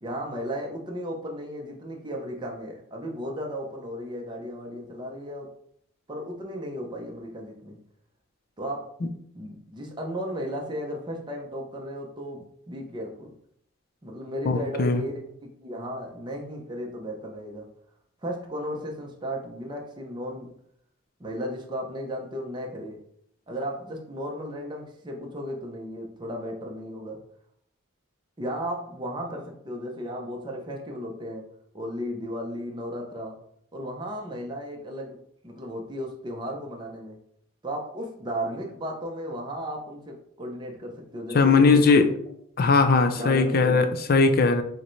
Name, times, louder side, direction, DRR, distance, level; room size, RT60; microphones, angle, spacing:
voice 1, 0.0-5.5 6.1-7.8 8.6-8.9 9.3-13.3 14.0-15.2 15.6-17.7 18.2-20.5 21.2-23.0 23.5-27.2 28.4-31.5 31.7-33.4 33.7-35.2 35.4-37.2 37.6-42.0 43.1-43.9, equal, 20° right, 1 dB, 0.6 m, -35 dB
voice 2, 14.5-15.0 41.3-42.1 42.6-44.6, left 4 dB, 45° left, 7 dB, 0.4 m, -19 dB
6.3 x 2.2 x 3.1 m, 0.69 s
head